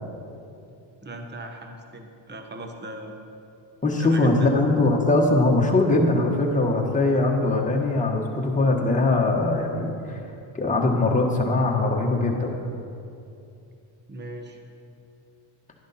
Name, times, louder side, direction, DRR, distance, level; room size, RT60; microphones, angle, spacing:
voice 1, 1.0-3.2 4.0-4.5 14.1-14.6, right 1 dB, 20° right, 4 dB, 1.1 m, -39 dB
voice 2, 3.8-10.2 10.5-12.5, left 2 dB, 15° left, 0 dB, 1.4 m, -21 dB
11.5 x 11.0 x 4.3 m, 2.6 s
cardioid pair, 115°, 48 cm